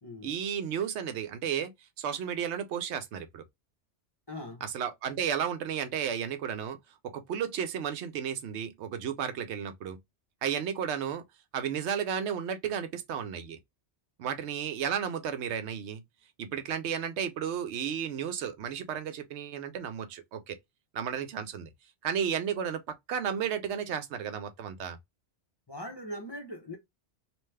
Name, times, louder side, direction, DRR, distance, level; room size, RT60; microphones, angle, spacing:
voice 1, 0.2-1.7 2.0-3.4 4.6-6.8 7.0-10.0 10.4-11.2 11.5-13.6 14.2-16.0 16.4-20.6 20.9-21.7 22.0-25.0, right 8 dB, 80° right, 0.9 m, -33 dB
voice 2, 4.3-4.6 25.7-26.8, left 1 dB, 25° left, 0.6 m, -40 dB
3.0 x 2.2 x 3.2 m
omnidirectional pair, 1.2 m